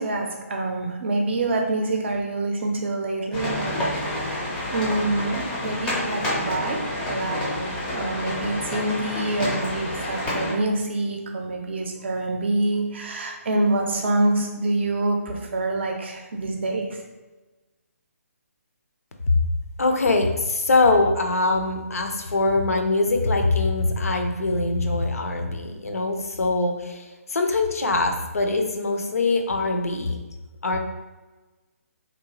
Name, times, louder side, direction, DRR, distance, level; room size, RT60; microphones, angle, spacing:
voice 1, 0.0-6.8 7.1-17.0, right 2 dB, 50° right, 2 dB, 0.5 m, -26 dB
sound 1, 3.3-10.5, left 1 dB, 10° left, 0.4 m, -29 dB
voice 2, 19.8-30.2 30.6-30.8, left 3 dB, 75° left, 4 dB, 0.4 m, -23 dB
2.9 x 2.1 x 2.6 m, 1.2 s
figure-of-eight pair, 145°, 8 cm